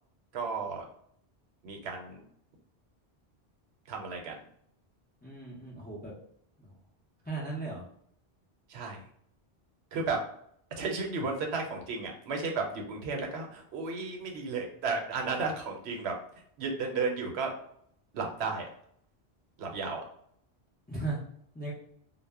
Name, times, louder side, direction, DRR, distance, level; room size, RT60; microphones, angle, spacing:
voice 1, 0.3-0.9 1.6-2.2 3.9-4.4 8.7-9.1 9.9-10.2 10.8-17.6 18.1-18.7 19.6-20.1, right 4 dB, 85° right, 2 dB, 0.9 m, -34 dB
voice 2, 5.2-6.1 6.6-6.8 7.2-7.8 20.9-21.2 21.5-21.7, right 3 dB, 15° left, -4 dB, 0.4 m, -37 dB
2.0 x 2.0 x 3.4 m, 0.66 s
omnidirectional pair, 1.1 m